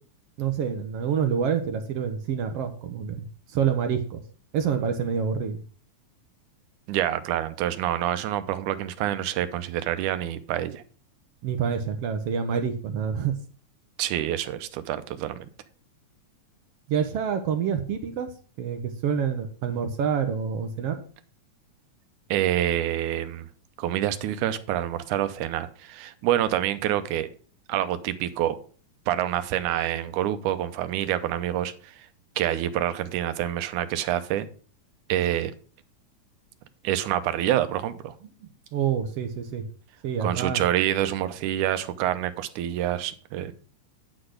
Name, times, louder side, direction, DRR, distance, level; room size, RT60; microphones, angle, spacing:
voice 1, 0.4-3.3 3.5-4.2 4.5-5.6 11.4-13.3 16.9-18.3 18.6-21.0 38.7-39.6 40.0-40.6, right 7 dB, 70° right, 8 dB, 1.6 m, -27 dB
voice 2, 6.9-10.8 14.0-15.5 22.3-23.5 23.8-27.3 27.7-28.6 29.1-32.1 32.4-34.5 35.1-35.5 36.8-38.1 40.2-43.5, right 12 dB, 90° right, 12 dB, 2.2 m, -27 dB
9.7 x 4.1 x 6.4 m, 0.42 s
omnidirectional pair, 3.4 m